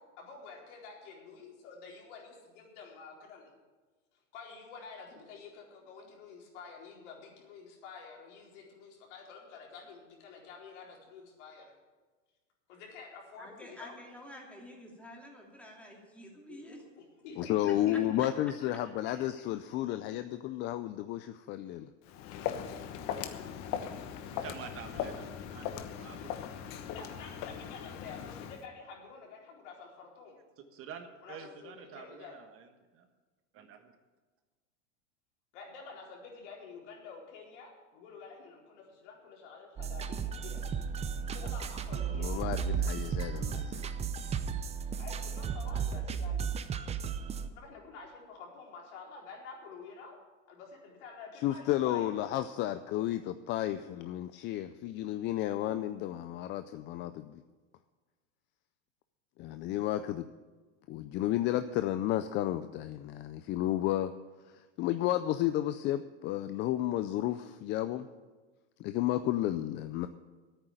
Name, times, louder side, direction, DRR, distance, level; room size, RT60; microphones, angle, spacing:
voice 1, 0.0-3.5 4.3-11.7 12.7-14.0 16.5-18.5 18.8-19.2 24.6-25.2 26.9-30.4 31.2-32.4 35.5-40.6 41.3-42.6 44.9-46.5 47.5-50.2 50.5-52.1, left 5 dB, 65° left, -1 dB, 4.2 m, -49 dB
voice 2, 13.4-16.8 17.6-18.0, left 1 dB, 5° left, -1 dB, 2.8 m, -49 dB
voice 3, 17.4-21.9 42.2-43.9 51.4-57.4 59.4-60.2 60.9-64.1 64.5-68.1 68.8-70.1, left 13 dB, 30° left, 11 dB, 0.4 m, -32 dB
Walk footsteps, 22.0-28.6, left 9 dB, 45° left, 1.1 m, -39 dB
voice 4, 24.3-26.4 26.6-26.8 30.6-33.1 33.5-33.9, right 7 dB, 35° right, 7 dB, 1.3 m, -48 dB
sound 1, 39.8-47.5, right 7 dB, 15° right, 0.6 m, -34 dB
10.5 x 9.0 x 9.2 m, 1.3 s
supercardioid pair, 130°, 38 cm